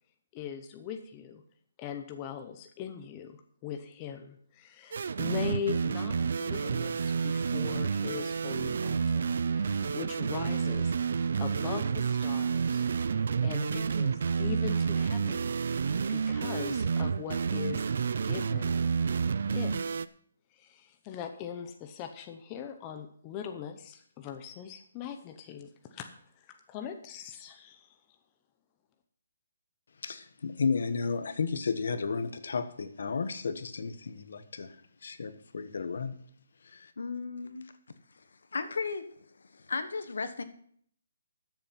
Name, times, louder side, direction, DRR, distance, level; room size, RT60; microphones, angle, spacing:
voice 1, 0.3-1.4 1.8-12.9 13.1-18.8 19.5-20.0 20.5-26.1 26.4-27.9, left 8 dB, 20° left, 6 dB, 0.7 m, -41 dB
sound 1, 4.9-20.1, right 6 dB, 55° right, 0.5 m, -29 dB
voice 2, 30.0-34.7 35.0-36.2 36.7-36.9, left 5 dB, 65° left, 10 dB, 1.3 m, -33 dB
voice 3, 37.0-37.7 38.2-38.3 38.5-39.0 39.5-40.4, left 4 dB, 85° left, 10 dB, 1.3 m, -35 dB
13.5 x 7.3 x 5.8 m, 0.62 s
hypercardioid pair, 170°, 0 cm